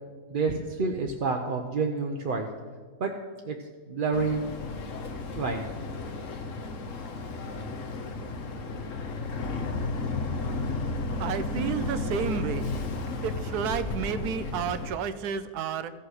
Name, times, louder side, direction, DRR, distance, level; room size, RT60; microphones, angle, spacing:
voice 1, 0.3-2.5 3.0-3.6 3.9-4.4 5.3-5.7, right 4 dB, 50° right, 2 dB, 0.6 m, -28 dB
Boat Water vehicle, 4.1-14.9, left 3 dB, 60° left, 1.3 m, -33 dB
voice 2, 11.2-12.6 13.2-15.9, right 7 dB, 85° right, 12 dB, 1.2 m, -31 dB
14.5 x 5.7 x 6.4 m, 1.5 s
omnidirectional pair, 1.6 m